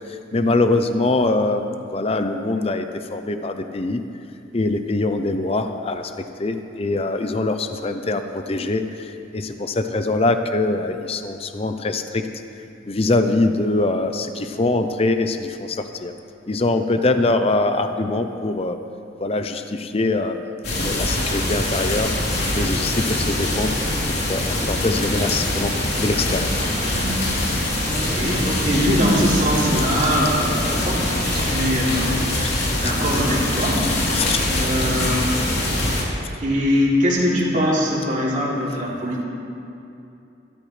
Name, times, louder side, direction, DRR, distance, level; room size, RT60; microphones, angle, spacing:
voice 1, 0.3-2.9 3.1-4.0 4.5-6.1 6.4-8.8 9.3-12.2 12.9-16.1 16.5-18.8 19.2-20.4 20.7-22.1 22.5-23.8 24.3-25.7 26.0-26.5 31.4-31.5 34.1-34.4, left 2 dB, 35° left, 7 dB, 0.6 m, -23 dB
sound 1, 20.6-36.0, left 1 dB, 60° left, 3.3 m, -23 dB
voice 2, 27.9-35.2 36.4-39.2, equal, 45° right, -5 dB, 3.1 m, -22 dB
21.5 x 13.0 x 3.3 m, 2.7 s
head